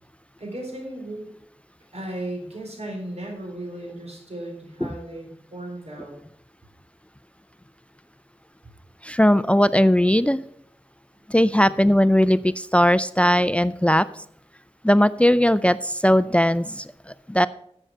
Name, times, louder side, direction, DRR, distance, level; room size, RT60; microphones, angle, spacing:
voice 1, 0.4-1.3 1.9-6.2, right 1 dB, 80° right, 0 dB, 3.9 m, -35 dB
voice 2, 9.0-10.4 11.3-14.1 14.8-17.5, equal, 10° left, 15 dB, 0.4 m, -19 dB
11.5 x 7.8 x 4.7 m, 0.69 s
wide cardioid pair, 50°, 11 cm